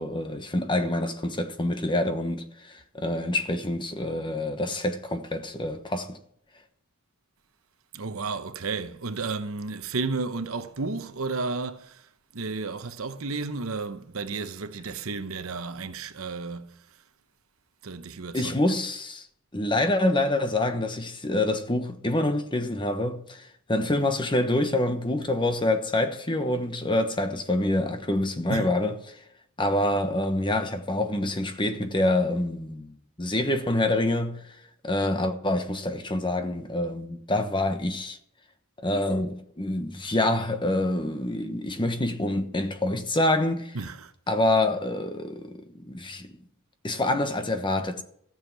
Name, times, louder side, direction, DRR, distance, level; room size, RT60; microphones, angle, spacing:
voice 1, 0.0-6.2 18.3-19.2 19.5-29.2 29.6-34.4 34.8-38.2 38.8-43.8 44.3-46.3 46.8-48.0, left 1 dB, 25° left, 1.1 m, -26 dB
voice 2, 7.9-16.8 17.8-18.7 28.5-28.7 43.7-44.1, right 4 dB, 75° right, 0.9 m, -33 dB
14.5 x 7.4 x 6.0 m
head